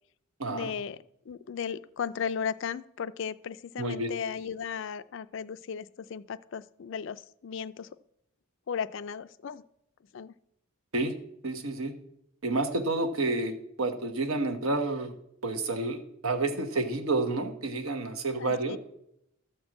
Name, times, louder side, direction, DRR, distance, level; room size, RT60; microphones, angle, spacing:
voice 1, 0.5-1.0 1.3-8.0 8.7-9.6 10.1-10.3 18.4-18.8, left 7 dB, 60° left, 15 dB, 0.3 m, -36 dB
voice 2, 3.8-4.1 10.9-11.1 11.4-11.9 12.4-15.1 15.4-18.8, right 2 dB, 75° right, 6 dB, 1.1 m, -29 dB
12.5 x 4.5 x 7.7 m, 0.77 s
head